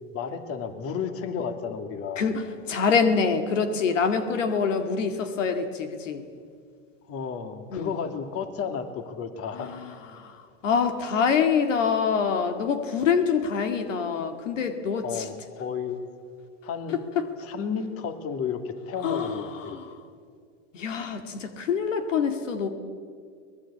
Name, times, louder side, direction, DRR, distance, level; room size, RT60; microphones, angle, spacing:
voice 1, 0.1-2.3 7.1-9.8 15.0-16.0 16.6-17.0 17.4-19.8, left 6 dB, 40° left, 8 dB, 2.6 m, -32 dB
voice 2, 2.2-6.3 7.7-7.9 9.5-15.3 16.9-17.3 19.0-19.9 20.7-22.7, left 6 dB, 90° left, 8 dB, 2.1 m, -26 dB
24.5 x 19.0 x 8.6 m, 2.1 s
hypercardioid pair, 115°, 36 cm